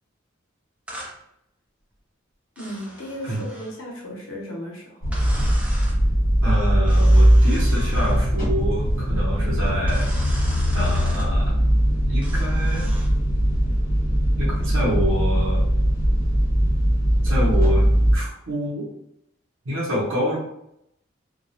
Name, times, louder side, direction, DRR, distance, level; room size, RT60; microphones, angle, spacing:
sound 1, 0.9-1.2 2.6-3.8 5.1-6.0 6.9-8.2 9.9-11.3 12.2-13.1, equal, 5° right, 0.4 m, -39 dB
voice 1, 2.6-5.2, equal, 85° left, -2 dB, 0.7 m, -35 dB
sound 2, 5.0-18.2, equal, 45° left, 1.0 m, -20 dB
voice 2, 6.4-10.1 10.7-11.5 12.1-12.9 14.4-15.7 17.2-17.9 18.1-18.9 19.6-20.4, equal, 75° right, -7 dB, 0.8 m, -27 dB
2.3 x 2.0 x 2.7 m, 0.78 s
head